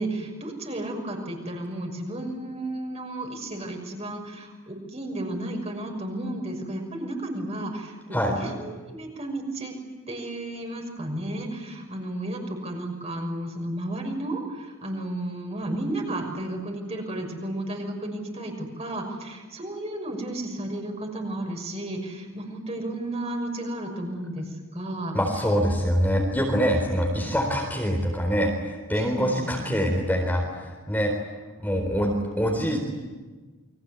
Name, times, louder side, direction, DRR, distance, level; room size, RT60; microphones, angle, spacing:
voice 1, 0.0-9.7 10.1-25.2 27.2-27.3 28.9-29.6, right 1 dB, 30° right, 2 dB, 6.2 m, -33 dB
voice 2, 25.1-31.1 31.6-32.9, equal, 10° left, 1 dB, 4.1 m, -24 dB
30.0 x 24.0 x 8.3 m, 1.3 s
head